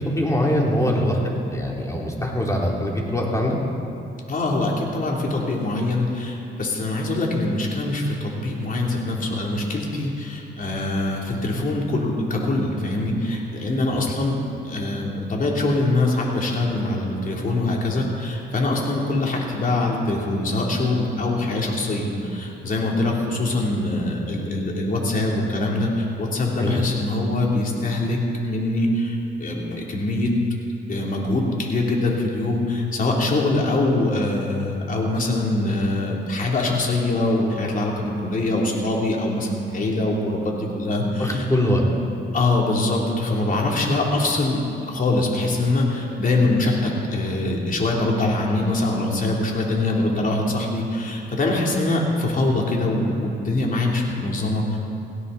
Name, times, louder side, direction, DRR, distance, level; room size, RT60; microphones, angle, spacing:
voice 1, 0.0-3.6 26.6-26.8 41.2-41.8, left 1 dB, 15° left, -2 dB, 3.3 m, -23 dB
voice 2, 4.3-14.4 14.6-30.3 30.9-41.5 42.3-44.6 44.9-54.8, left 2 dB, 45° left, -2 dB, 3.4 m, -23 dB
17.5 x 16.5 x 4.2 m, 2.7 s
cardioid pair, 90°, 20 cm